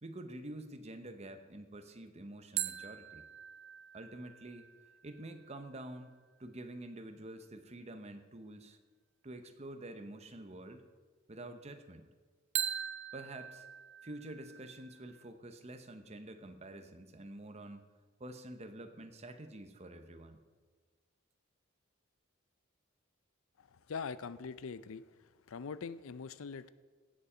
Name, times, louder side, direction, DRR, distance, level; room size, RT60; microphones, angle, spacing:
voice 1, 0.0-3.3 3.9-4.7 5.0-6.1 6.4-8.8 9.2-10.9 11.3-12.1 13.1-13.7 14.0-17.9 18.2-20.4, right 1 dB, 30° right, 8 dB, 0.9 m, -48 dB
sound 1, 2.6-6.1 12.6-15.3, right 11 dB, 60° right, 0.6 m, -42 dB
voice 2, 23.9-25.0 25.5-26.7, left 5 dB, 75° left, 15 dB, 0.5 m, -42 dB
16.0 x 7.2 x 5.0 m, 1.4 s
head